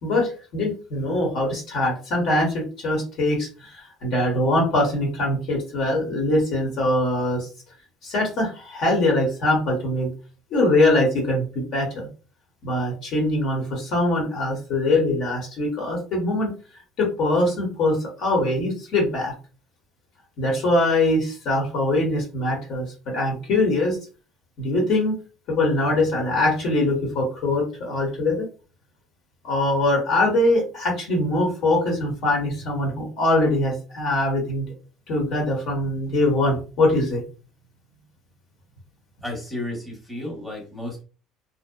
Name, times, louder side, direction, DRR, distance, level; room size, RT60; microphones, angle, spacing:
voice 1, 0.0-3.5 4.0-7.4 8.0-10.1 10.5-12.1 12.6-16.5 17.0-19.3 20.4-24.0 24.6-25.2 25.5-28.5 29.4-34.7 35.1-37.2, left 1 dB, 60° left, 0 dB, 1.0 m, -22 dB
voice 2, 39.2-41.0, left 1 dB, 5° left, -2 dB, 1.0 m, -32 dB
2.6 x 2.1 x 2.2 m, 0.35 s
cardioid pair, 115°, 0 cm